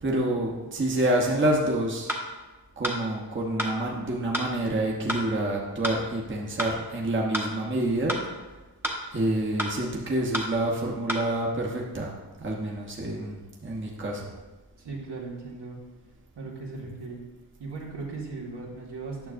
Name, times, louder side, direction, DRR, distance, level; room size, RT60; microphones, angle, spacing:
voice 1, 0.0-2.1 2.8-8.1 9.1-12.1 12.4-14.3, right 1 dB, 25° right, -2 dB, 1.1 m, -27 dB
sound 1, 2.1-2.2 2.8-3.0 3.6-3.7 4.3-4.5 5.1-5.2 5.8-6.0 6.6-6.7 7.3-7.5 8.1-8.2 8.8-9.0 9.6-9.7 10.3-10.5 11.1-11.2, equal, 5° right, 1.0 m, -29 dB
voice 2, 14.8-15.8 16.4-17.2 17.6-19.3, right 3 dB, 65° right, -4 dB, 1.9 m, -37 dB
9.3 x 6.2 x 2.6 m, 1.2 s
cardioid pair, 75°, 43 cm